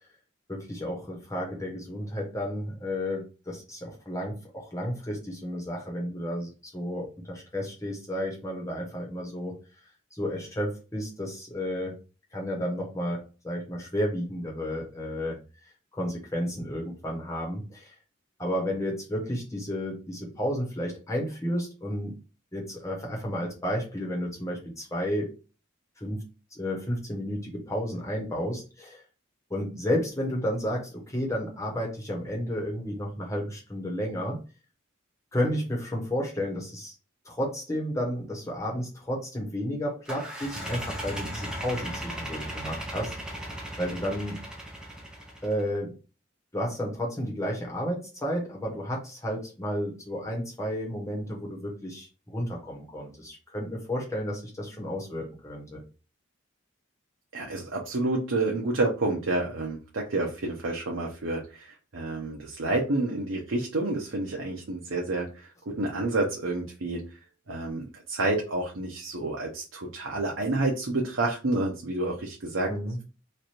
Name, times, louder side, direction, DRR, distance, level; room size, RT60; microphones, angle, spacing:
voice 1, 0.5-9.6 10.1-12.0 12.3-15.4 15.9-17.9 18.4-22.1 22.5-25.3 26.0-26.3 26.5-29.0 29.5-34.4 35.3-36.9 37.2-43.4 43.8-44.4 45.4-46.0 46.5-55.8 65.7-65.8 72.7-73.0, equal, 15° left, -1 dB, 1.1 m, -32 dB
sound 1, 40.1-45.6, right 1 dB, 5° right, 0.7 m, -37 dB
voice 2, 57.3-67.1 67.5-72.7, right 2 dB, 75° right, -1 dB, 0.7 m, -29 dB
3.2 x 2.5 x 4.3 m, 0.33 s
head